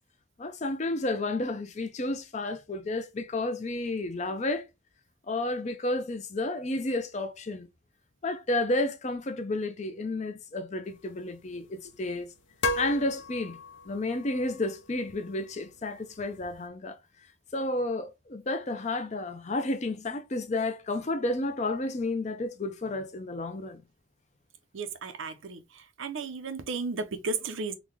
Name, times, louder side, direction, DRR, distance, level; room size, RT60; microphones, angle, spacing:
voice 1, 0.4-4.6 5.3-7.7 8.2-12.3 12.8-13.6 13.9-17.0 17.5-23.8, left 2 dB, 35° left, 0.5 m, -31 dB
sound 1, 10.8-16.7, left 2 dB, 80° left, 0.6 m, -38 dB
voice 2, 24.7-25.6 26.0-27.7, right 4 dB, 80° right, 0.6 m, -34 dB
3.7 x 2.2 x 3.1 m
head